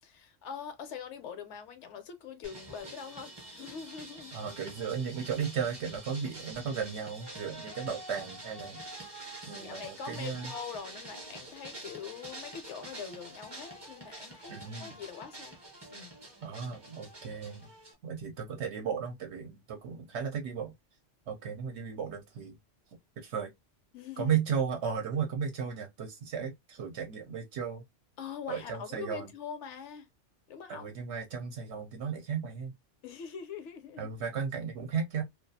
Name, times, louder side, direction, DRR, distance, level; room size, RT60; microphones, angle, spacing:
voice 1, 0.0-4.3 9.3-15.6 15.9-16.2 23.9-24.4 28.2-30.1 30.5-30.9 33.0-34.1, left 7 dB, 70° left, 0.8 m, -43 dB
sound 1, 2.4-17.9, right 1 dB, 25° right, 0.6 m, -46 dB
voice 2, 4.3-8.8 9.5-10.5 14.5-15.0 16.4-17.7 18.0-20.7 21.3-22.6 23.2-23.5 24.2-27.8 28.5-29.2 30.7-32.7 34.0-35.2, right 7 dB, 70° right, 0.8 m, -35 dB
2.3 x 2.3 x 2.5 m
omnidirectional pair, 1.3 m